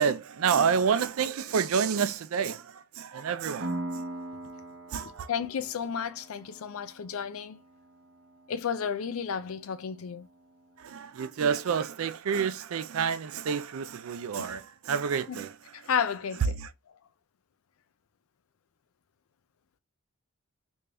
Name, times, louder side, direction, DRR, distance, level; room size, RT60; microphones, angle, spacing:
voice 1, 0.0-4.0 4.9-5.3 10.8-15.6 16.6-16.7, right 6 dB, 75° right, 0.4 m, -29 dB
Piano, 3.6-11.0, right 1 dB, 55° right, 0.9 m, -42 dB
voice 2, 5.0-7.6 8.5-10.3 14.4-14.5 15.3-15.4 15.7-16.5, left 7 dB, 80° left, 0.4 m, -32 dB
3.3 x 2.6 x 3.4 m
head